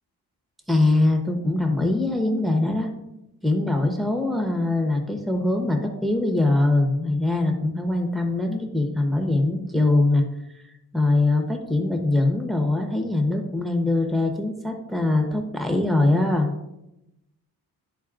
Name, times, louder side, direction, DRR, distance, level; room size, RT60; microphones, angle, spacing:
voice 1, 0.7-2.9 3.4-10.2 10.5-16.5, left 2 dB, ahead, 4 dB, 0.9 m, -22 dB
11.5 x 4.0 x 2.5 m, 0.89 s
wide cardioid pair, 105°, 39 cm